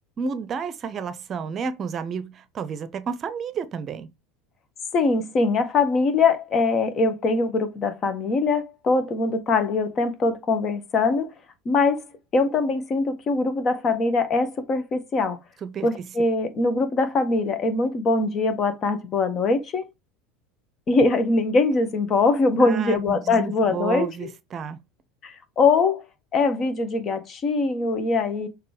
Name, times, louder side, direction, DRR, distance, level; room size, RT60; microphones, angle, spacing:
voice 1, 0.2-4.1 15.6-16.1 22.6-24.8, right 6 dB, 35° right, 0.8 m, -31 dB
voice 2, 4.9-11.3 11.6-12.0 12.3-15.4 15.8-19.8 20.9-24.3 25.2-26.0 26.3-28.5, left 3 dB, 35° left, 1.5 m, -22 dB
6.7 x 3.1 x 5.0 m
figure-of-eight pair, 75°, 0 cm